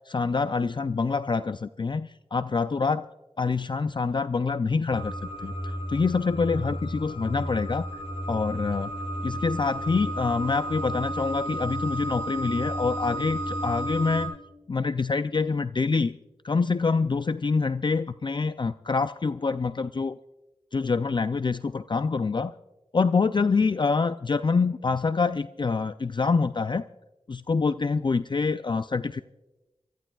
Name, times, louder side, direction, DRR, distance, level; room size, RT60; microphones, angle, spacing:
voice 1, 0.1-3.1 3.4-8.0 8.3-8.9 9.2-14.3 14.7-16.2 16.4-20.2 20.7-22.5 22.9-26.9 27.3-29.2, left 4 dB, 45° left, 12 dB, 0.4 m, -26 dB
sound 1, 4.9-14.3, right 1 dB, 70° left, 4.8 m, -32 dB
27.5 x 14.5 x 2.3 m, 1.1 s
wide cardioid pair, 60°, 11 cm